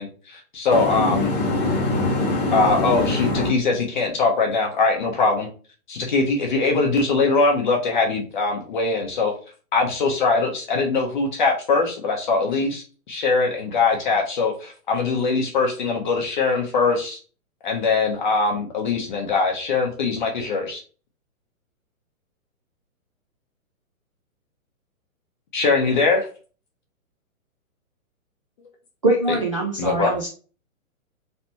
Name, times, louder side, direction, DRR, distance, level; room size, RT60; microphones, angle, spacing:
voice 1, 0.0-1.3 2.5-5.5 5.9-9.3 9.7-17.2 17.6-20.8 25.5-26.3 29.8-30.1, left 4 dB, 35° left, 1 dB, 0.8 m, -22 dB
voice 2, 0.7-3.5, left 2 dB, 15° left, -3 dB, 1.3 m, -23 dB
voice 3, 29.0-30.3, right 2 dB, 25° right, -3 dB, 0.4 m, -22 dB
3.3 x 2.9 x 4.1 m, 0.37 s
hypercardioid pair, 155°, 43 cm